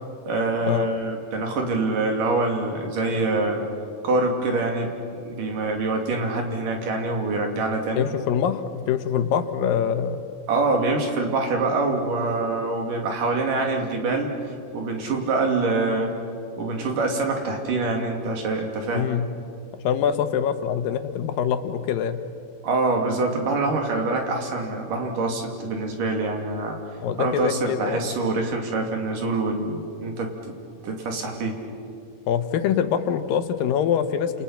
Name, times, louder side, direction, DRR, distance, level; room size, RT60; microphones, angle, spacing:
voice 1, 0.3-3.6 4.0-4.9 5.2-8.1 10.5-14.3 14.7-16.1 16.6-19.1 22.6-26.8 27.2-30.5 30.8-31.6, right 3 dB, 70° right, 2 dB, 4.3 m, -25 dB
voice 2, 8.0-10.2 18.9-19.3 19.7-22.2 27.0-28.1 32.3-34.4, left 8 dB, 85° left, 9 dB, 2.8 m, -24 dB
30.0 x 28.5 x 5.8 m, 2.5 s
omnidirectional pair, 3.9 m